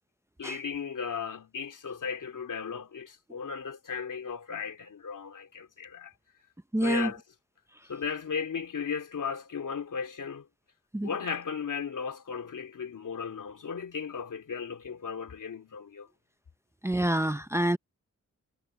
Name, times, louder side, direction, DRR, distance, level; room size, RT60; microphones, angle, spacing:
voice 1, 0.4-6.1 6.8-7.2 7.9-10.5 11.0-16.1, left 6 dB, 85° left, 2.7 m, -36 dB
voice 2, 6.7-7.1 10.9-11.1 16.8-17.8, right 1 dB, 10° right, 0.6 m, -27 dB
wide cardioid pair, 85°, 31 cm